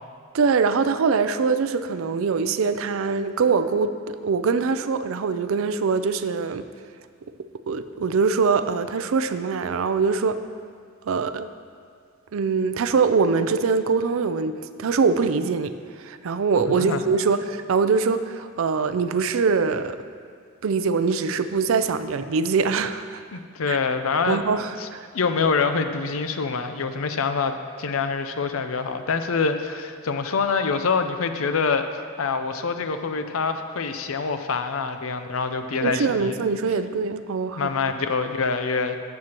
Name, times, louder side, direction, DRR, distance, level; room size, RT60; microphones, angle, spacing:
voice 1, 0.3-6.6 7.7-10.4 11.1-11.5 12.3-15.7 16.0-20.0 20.6-23.2 23.7-23.8 24.3-25.1 35.8-37.7, right 5 dB, 65° right, 11 dB, 0.4 m, -23 dB
voice 2, 16.7-17.0 23.3-24.4 24.8-24.9 25.1-36.4 37.6-39.0, left 5 dB, 70° left, 8 dB, 0.6 m, -25 dB
14.0 x 7.6 x 3.0 m, 2.1 s
head